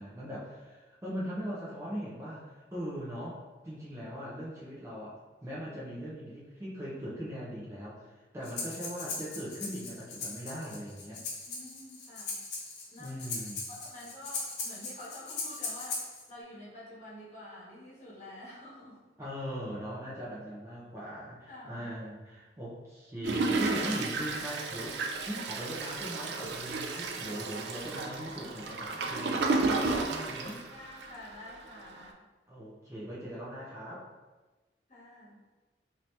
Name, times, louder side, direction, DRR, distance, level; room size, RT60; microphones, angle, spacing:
voice 1, 0.0-11.2 13.0-13.6 19.2-30.6 32.5-34.0, equal, 15° right, -8 dB, 0.6 m, -40 dB
Breathing, 8.4-16.2, left 3 dB, 75° left, 0.8 m, -39 dB
voice 2, 11.5-12.4 12.9-13.2 13.7-16.0 16.3-19.0 21.5-22.0 30.7-32.1 34.9-35.4, left 1 dB, 40° left, -8 dB, 1.3 m, -48 dB
Toilet flush, 23.2-31.3 31.8-31.9 32.0-32.1, right 3 dB, 65° right, 0.4 m, -32 dB
2.9 x 2.7 x 3.2 m, 1.2 s
head